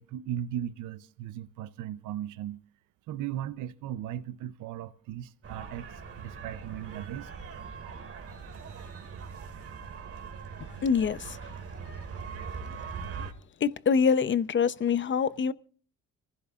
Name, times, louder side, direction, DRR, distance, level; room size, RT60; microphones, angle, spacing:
voice 1, 0.0-2.6 3.1-5.9 6.2-7.3, right 11 dB, 90° right, 0.7 m, -37 dB
sound 1, 5.4-13.3, right 5 dB, 50° right, 2.3 m, -41 dB
voice 2, 10.8-11.4 13.6-15.5, left 6 dB, 40° left, 0.8 m, -25 dB
29.5 x 15.5 x 2.4 m
cardioid pair, 90°, 30 cm